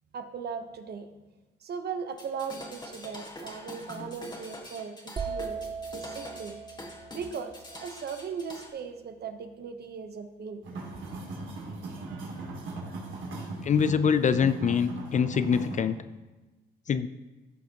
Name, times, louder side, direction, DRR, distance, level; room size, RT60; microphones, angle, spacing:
voice 1, 0.1-1.1 1.6-6.6 7.1-10.6, right 6 dB, 55° right, 8 dB, 1.0 m, -38 dB
sound 1, 2.1-8.7, left 1 dB, 20° left, 1.6 m, -44 dB
sound 2, 5.2-8.9, right 5 dB, 20° right, 0.4 m, -39 dB
sound 3, 10.6-15.9, right 2 dB, 80° right, 2.2 m, -38 dB
voice 2, 13.6-16.0 16.9-17.1, left 7 dB, 40° left, 13 dB, 0.4 m, -24 dB
14.5 x 6.0 x 2.9 m, 1.1 s
cardioid pair, 90°, 20 cm